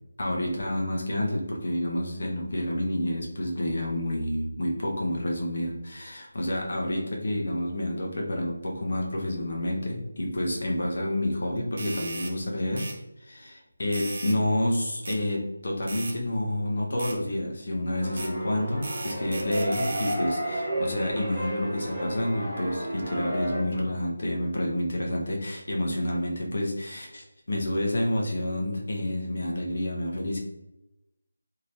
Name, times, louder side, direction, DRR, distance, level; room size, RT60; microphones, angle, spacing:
voice 1, 0.2-12.9 13.2-30.4, left 1 dB, 55° left, 0 dB, 0.9 m, -29 dB
sound 1, 11.8-12.3 12.8-13.0 13.9-14.4 15.1-15.2 15.9-16.2 17.0-17.2 18.2-18.3 18.8-20.2, right 3 dB, 40° right, 0.5 m, -37 dB
sound 2, 18.0-23.6, right 1 dB, ahead, 1.3 m, -32 dB
3.1 x 2.8 x 2.8 m, 0.90 s
figure-of-eight pair, 165°, 0 cm